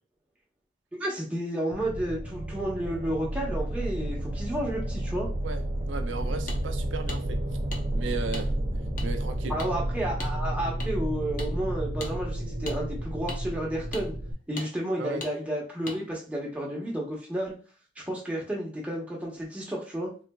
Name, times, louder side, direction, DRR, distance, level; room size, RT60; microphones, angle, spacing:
voice 1, 0.9-5.3 9.5-14.1 14.5-17.5 18.1-20.1, right 1 dB, 5° right, -3 dB, 0.9 m, -31 dB
sound 1, 1.7-14.3, right 1 dB, 30° right, 0.4 m, -31 dB
voice 2, 5.4-7.4 7.9-8.5 9.0-9.5 15.0-15.2, right 4 dB, 85° right, 6 dB, 0.5 m, -35 dB
sound 2, 6.5-6.6 7.1-7.2 7.7-7.8 8.3-8.5 9.0-9.1 9.6-9.7 10.2-10.3 10.8-10.9 11.4-11.5 12.0-12.1 12.7-12.8 13.3-13.4 13.9-14.0 14.6-14.7 15.2-15.3 15.9-16.0, left 3 dB, 45° left, 0.6 m, -37 dB
3.9 x 2.4 x 2.2 m, 0.38 s
head